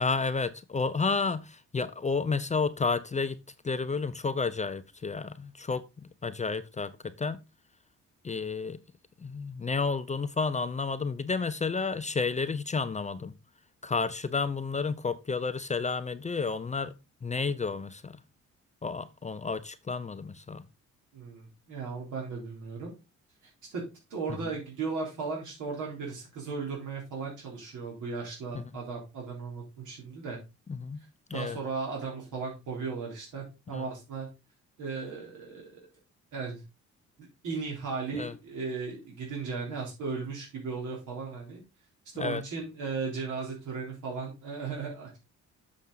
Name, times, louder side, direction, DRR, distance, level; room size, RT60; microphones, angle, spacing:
voice 1, 0.0-3.4 3.6-7.4 8.2-8.8 9.2-13.3 13.8-16.9 17.2-18.2 18.8-20.7 28.5-28.6 30.7-31.0 31.3-31.6 33.7-33.9 38.1-38.3 42.2-42.4, left 4 dB, 25° left, 0.6 m, -31 dB
voice 2, 21.1-22.9 23.7-23.8 24.1-30.4 31.3-34.3 34.8-35.7 36.3-36.6 37.2-41.6 42.2-45.2, right 4 dB, 80° right, 3.6 m, -36 dB
7.2 x 6.1 x 3.9 m
cardioid pair, 90°, 30 cm